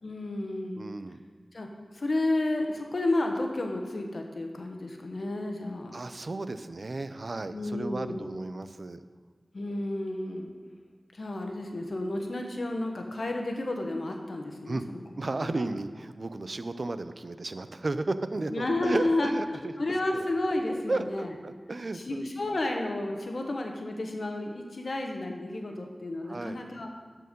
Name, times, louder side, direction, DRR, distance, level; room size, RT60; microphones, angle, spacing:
voice 1, 0.0-0.9 1.5-1.7 1.9-5.9 7.5-8.3 9.5-10.5 11.1-15.0 15.4-15.6 18.5-21.3 21.9-26.9, left 2 dB, 70° left, 3 dB, 1.2 m, -31 dB
voice 2, 0.8-1.2 5.9-9.0 14.7-14.8 15.2-19.7 20.1-20.3 20.9-22.3 26.2-26.6, right 2 dB, 60° right, 11 dB, 0.5 m, -34 dB
12.5 x 4.6 x 5.3 m, 1.5 s
cardioid pair, 40°, 0 cm